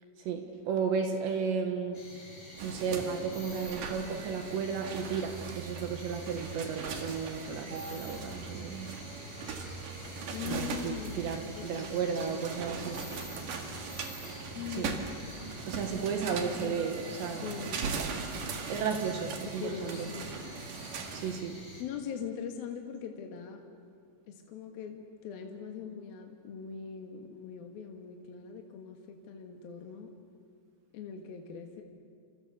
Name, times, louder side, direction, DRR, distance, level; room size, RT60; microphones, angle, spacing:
voice 1, 0.2-2.0 2.5-8.9 10.5-13.0 14.8-14.9 15.7-17.5 18.7-20.1 21.1-21.6, right 6 dB, 70° right, 4 dB, 3.6 m, -34 dB
sound 1, 1.9-21.8, left 1 dB, 20° left, 5.6 m, -49 dB
sound 2, 2.6-21.4, right 4 dB, 55° right, 3.0 m, -40 dB
voice 2, 10.3-12.9 14.5-15.1 16.6-16.9 17.3-17.9 19.4-20.3 21.8-23.6 24.3-30.1 30.9-31.8, left 7 dB, 60° left, 3 dB, 3.0 m, -41 dB
30.0 x 27.5 x 6.9 m, 2.4 s
omnidirectional pair, 5.4 m